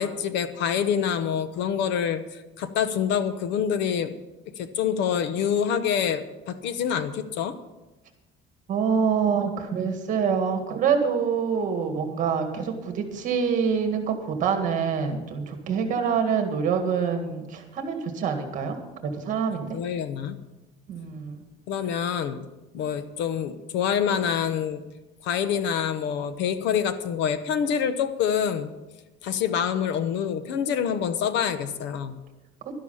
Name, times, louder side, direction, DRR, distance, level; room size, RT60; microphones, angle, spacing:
voice 1, 0.0-4.1 4.6-7.6 19.7-20.4 21.7-22.4 22.7-24.8 25.2-28.7 29.2-32.2, left 8 dB, 60° left, 12 dB, 0.9 m, -26 dB
voice 2, 8.7-18.8 19.0-19.8 20.9-21.4, right 6 dB, 40° right, 5 dB, 1.8 m, -26 dB
12.0 x 11.0 x 5.7 m, 1.0 s
cardioid pair, 170°, 21 cm